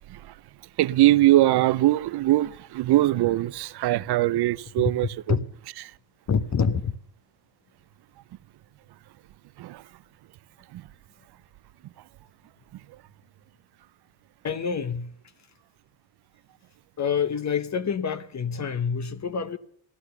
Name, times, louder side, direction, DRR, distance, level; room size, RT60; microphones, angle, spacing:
voice 1, 0.8-5.4 9.6-9.8 10.7-10.8, right 15 dB, 55° right, 0.6 m, -22 dB
voice 2, 6.3-7.0 14.4-15.1 17.0-19.6, left 6 dB, 35° left, 0.9 m, -26 dB
15.5 x 11.5 x 6.8 m
cardioid pair, 85°, 48 cm